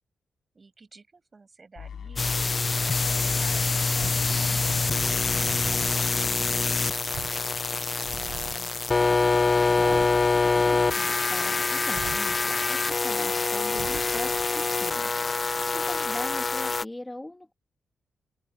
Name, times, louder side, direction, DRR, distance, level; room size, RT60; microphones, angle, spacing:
voice 1, 0.5-2.4 2.8-4.8 5.3-7.2, right 4 dB, 30° right, 5.5 m, -51 dB
sound 1, 1.7-7.7, left 7 dB, 70° left, 2.6 m, -43 dB
sound 2, 2.2-16.8, left 4 dB, 30° left, 0.4 m, -25 dB
sound 3, 3.9-6.0 7.1-7.5 7.8-8.6 9.8-10.7 11.9-12.5 13.7-14.6, right 9 dB, 80° right, 0.6 m, -41 dB
voice 2, 8.5-8.9 9.8-10.1 10.5-17.5, left 1 dB, 10° left, 1.9 m, -41 dB
cardioid pair, 115°, 0 cm